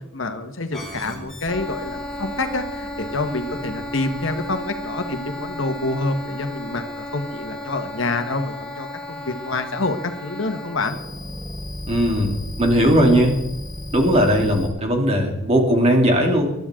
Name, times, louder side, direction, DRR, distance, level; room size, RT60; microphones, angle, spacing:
voice 1, 0.1-11.0, left 2 dB, 65° left, 8 dB, 1.4 m, -27 dB
sound 1, 0.7-14.7, left 1 dB, ahead, 4.5 m, -34 dB
voice 2, 11.9-12.3 12.6-13.3 13.9-16.5, equal, 30° right, 2 dB, 2.8 m, -18 dB
21.0 x 12.0 x 3.8 m, 0.92 s
head